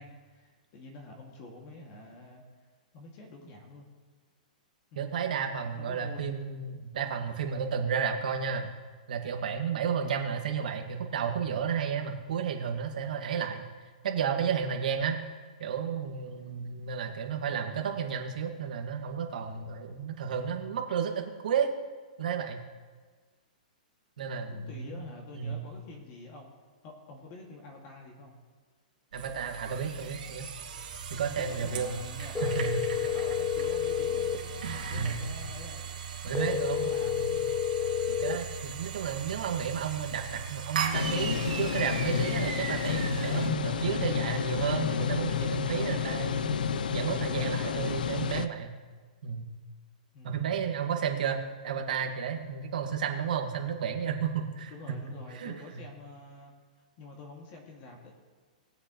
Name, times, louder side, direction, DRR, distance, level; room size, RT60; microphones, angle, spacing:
voice 1, 0.0-2.4 2.9-3.9 4.9-5.0 5.8-6.4 9.9-10.2 17.3-17.9 24.5-26.5 26.8-28.3 31.4-35.9 36.3-37.6 47.6-48.0 50.1-50.6 54.7-56.5 57.0-58.1, left 2 dB, 35° left, 0 dB, 2.2 m, -47 dB
voice 2, 5.0-8.7 9.1-13.7 14.0-15.2 15.6-21.7 22.2-22.6 24.2-25.0 25.4-25.6 29.1-30.5 31.1-31.9 32.4-32.8 34.9-35.3 36.2-37.3 38.1-46.4 46.9-48.7 49.2-49.5 50.2-54.7 55.3-55.8, right 7 dB, 70° right, 3 dB, 1.8 m, -32 dB
sound 1, 29.1-43.5, right 6 dB, 90° right, 2.5 m, -38 dB
sound 2, 32.4-34.4 36.4-38.4, left 9 dB, 10° left, 0.5 m, -30 dB
sound 3, 40.9-48.5, left 7 dB, 85° left, 0.6 m, -30 dB
21.0 x 7.8 x 3.1 m, 1.5 s
hypercardioid pair, 160°, 5 cm